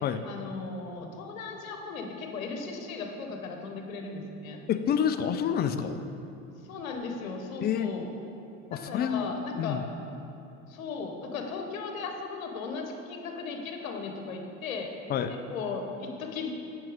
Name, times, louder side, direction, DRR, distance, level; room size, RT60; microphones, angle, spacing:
voice 1, 0.2-4.6 6.7-8.0 8.7-9.8 10.7-14.9 15.3-16.5, left 4 dB, 80° left, 3 dB, 0.9 m, -37 dB
voice 2, 4.7-6.0 7.6-7.9 8.7-9.3 9.6-9.8 15.1-15.3, left 8 dB, 25° left, 9 dB, 0.4 m, -28 dB
7.5 x 5.5 x 4.7 m, 2.9 s
hypercardioid pair, 80°, 40 cm